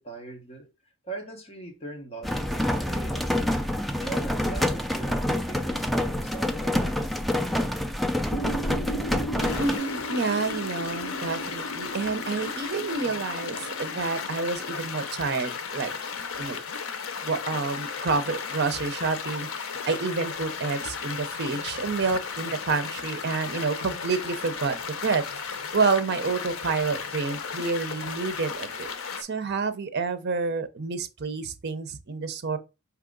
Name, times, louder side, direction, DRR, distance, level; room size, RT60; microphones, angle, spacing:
voice 1, 0.0-3.4 3.9-7.2, right 3 dB, 30° left, 1.2 m, -41 dB
sound 1, 2.2-9.8, left 1 dB, ahead, 0.3 m, -27 dB
sound 2, 8.3-14.5, right 1 dB, 60° left, 0.8 m, -37 dB
sound 3, 9.4-29.2, left 6 dB, 80° left, 0.6 m, -35 dB
voice 2, 9.6-15.9 16.4-16.6 17.2-24.7 25.0-25.2 25.7-28.9 29.2-32.6, right 4 dB, 55° right, 0.6 m, -28 dB
4.8 x 2.9 x 3.8 m
head